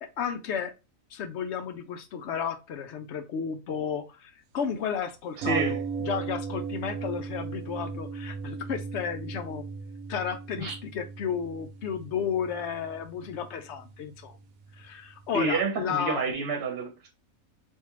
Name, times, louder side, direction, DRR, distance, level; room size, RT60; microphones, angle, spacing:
voice 1, 0.0-0.7 1.1-9.7 10.1-14.4 14.8-16.3, left 7 dB, 65° left, 0.7 m, -33 dB
voice 2, 5.4-5.8 10.6-10.7 15.3-17.1, right 4 dB, 45° right, 1.0 m, -29 dB
sound 1, 5.4-15.3 15.6-15.7, right 5 dB, 75° right, 1.0 m, -37 dB
3.6 x 2.6 x 3.0 m
omnidirectional pair, 1.5 m